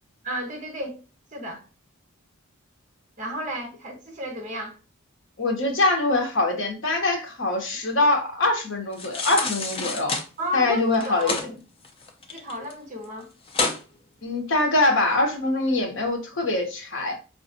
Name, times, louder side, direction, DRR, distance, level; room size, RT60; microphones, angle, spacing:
voice 1, 0.2-1.0 1.3-1.6 3.2-4.8 10.4-11.4 12.3-13.3, equal, 35° right, 0.9 m, -33 dB
voice 2, 5.4-10.1 10.5-11.3 14.2-17.2, left 2 dB, 60° left, 0.8 m, -23 dB
sound 1, 8.9-10.3 10.9-11.5 11.8-12.7 13.0-13.1 13.5-13.8 14.3-14.4, left 3 dB, 25° left, 0.5 m, -28 dB
4.9 x 2.4 x 2.6 m
head